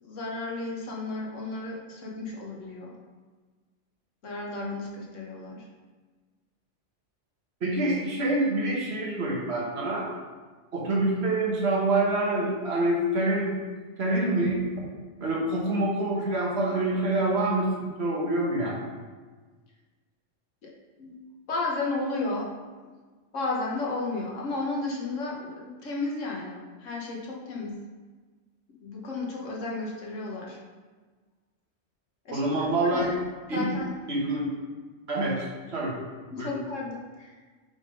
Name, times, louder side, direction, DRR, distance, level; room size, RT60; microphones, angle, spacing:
voice 1, 0.0-2.9 4.2-5.7 20.6-20.7 21.0-21.2 21.5-22.5 23.3-27.8 28.8-30.6 32.2-33.1 33.5-33.9 36.3-37.4, left 3 dB, 85° left, -2 dB, 1.5 m, -33 dB
voice 2, 7.6-10.1 10.7-13.6 14.0-14.6 15.2-18.8 32.3-33.1 33.5-33.7 34.1-34.5 35.1-36.0 36.4-36.5, right 2 dB, 60° right, -3 dB, 1.5 m, -26 dB
5.7 x 3.6 x 5.3 m, 1.4 s
omnidirectional pair, 1.2 m